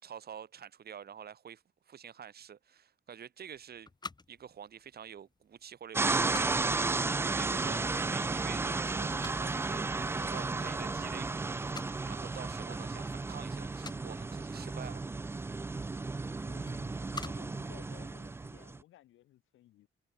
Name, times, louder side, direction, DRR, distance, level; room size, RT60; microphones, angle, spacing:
voice 1, 0.0-3.9 4.3-6.7 7.2-15.0, right 8 dB, 50° right, 2.1 m, -48 dB
sound 1, 3.4-18.7, left 3 dB, 20° left, 1.5 m, -52 dB
sound 2, 5.9-18.8, right 3 dB, 10° right, 0.3 m, -33 dB
voice 2, 16.4-19.9, left 14 dB, 85° left, 2.8 m, -57 dB
cardioid pair, 90°, 20 cm